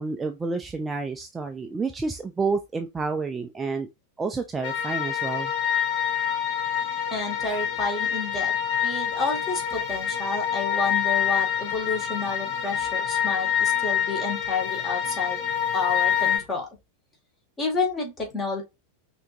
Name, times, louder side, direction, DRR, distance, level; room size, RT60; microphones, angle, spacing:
voice 1, 0.0-3.9 4.2-5.5, right 4 dB, 15° right, 0.5 m, -29 dB
sound 1, 4.6-16.4, left 9 dB, 40° left, 1.4 m, -26 dB
voice 2, 7.1-8.5 8.8-15.4 15.7-16.7 17.6-18.6, left 3 dB, 20° left, 1.9 m, -30 dB
5.6 x 2.9 x 2.6 m
figure-of-eight pair, 90°, 0 cm